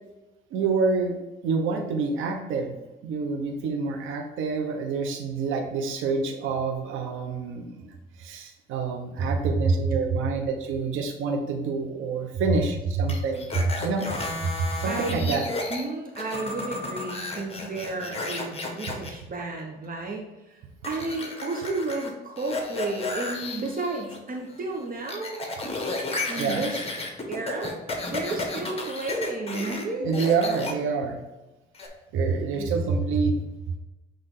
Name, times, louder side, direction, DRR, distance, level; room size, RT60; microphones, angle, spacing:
voice 1, 0.5-1.2 1.4-2.8 3.0-7.9 8.2-13.5 13.8-14.1 14.8-15.5 26.4-26.7 30.0-31.2 32.1-33.4, right 4 dB, 90° right, 3 dB, 1.1 m, -28 dB
sound 1, 13.1-15.8 16.2-19.1 20.8-22.1 22.4-24.2 24.5-29.8 30.1-30.7 31.7-31.9, left 2 dB, 30° left, 1.6 m, -33 dB
voice 2, 14.6-15.4 15.7-20.2 20.5-25.4 26.3-26.8 27.3-27.8 28.0-30.1 32.5-32.7, right 3 dB, 45° right, 0 dB, 1.2 m, -32 dB
8.3 x 3.5 x 3.8 m, 1.1 s
cardioid pair, 90°, 20 cm